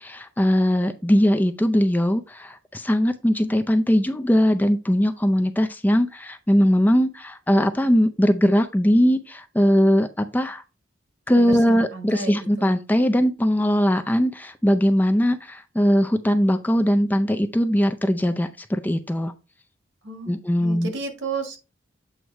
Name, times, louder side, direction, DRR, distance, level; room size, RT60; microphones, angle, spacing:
voice 1, 0.0-10.6 11.3-19.3 20.3-20.9, equal, 10° left, 0.4 m, -20 dB
voice 2, 11.4-12.7 20.0-21.6, right 4 dB, 75° right, 1.7 m, -33 dB
7.9 x 3.0 x 4.5 m
head